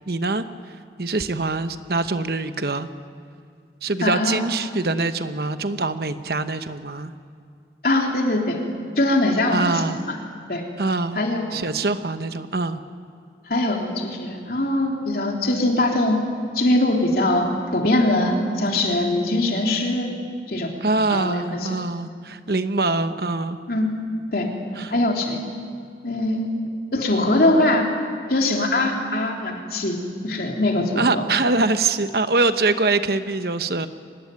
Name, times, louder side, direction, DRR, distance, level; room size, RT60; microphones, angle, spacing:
voice 1, 0.1-0.4 1.0-2.9 3.8-7.1 9.5-10.0 10.8-11.2 11.5-12.8 20.8-23.6 24.8-24.9 31.0-33.9, right 3 dB, 60° right, 10 dB, 1.0 m, -23 dB
voice 2, 4.0-4.4 7.8-8.6 9.0-10.1 10.5-10.6 11.2-11.6 13.5-16.2 16.6-20.1 20.5-20.7 21.1-21.8 23.7-23.9 24.3-24.5 24.9-25.4 26.0-26.6 26.9-27.8 28.3-30.0 30.2-31.2, left 1 dB, 55° left, 1 dB, 3.5 m, -22 dB
24.5 x 19.5 x 9.3 m, 2.2 s
head